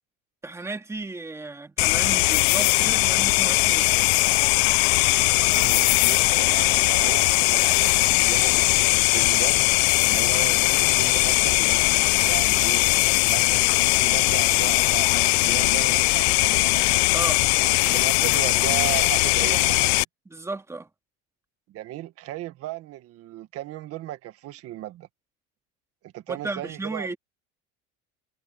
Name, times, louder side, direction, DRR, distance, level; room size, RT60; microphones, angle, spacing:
voice 1, 0.4-3.9 17.1-17.4 20.3-20.9 26.3-27.2, right 2 dB, 10° right, 2.4 m, -34 dB
sound 1, 1.8-20.0, left 24 dB, 90° left, 0.7 m, -20 dB
voice 2, 5.3-9.6 10.1-12.8 13.3-16.9 17.8-20.0 21.7-25.1 26.0-27.2, right 15 dB, 50° right, 1.7 m, -36 dB
cardioid pair, 150°, 31 cm